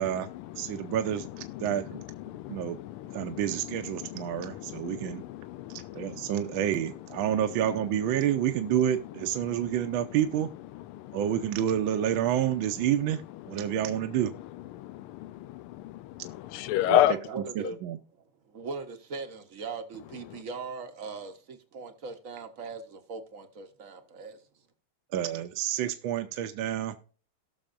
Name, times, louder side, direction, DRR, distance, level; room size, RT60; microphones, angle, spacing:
voice 1, 0.0-6.8 7.1-7.8 8.1-8.8 9.0-9.1 9.4-10.2 10.6-11.7 12.6-12.9 13.3-17.2 20.2-20.4, left 13 dB, 85° left, 1.5 m, -34 dB
voice 2, 0.6-2.0 2.5-2.8 3.1-5.2 5.7-10.5 11.1-13.2 13.5-14.3 16.9-17.0 17.6-18.0 25.1-27.0, right 10 dB, 75° right, 1.4 m, -29 dB
voice 3, 17.0-17.8 18.5-24.4, right 4 dB, 55° right, 0.9 m, -39 dB
18.5 x 6.3 x 2.5 m
omnidirectional pair, 2.4 m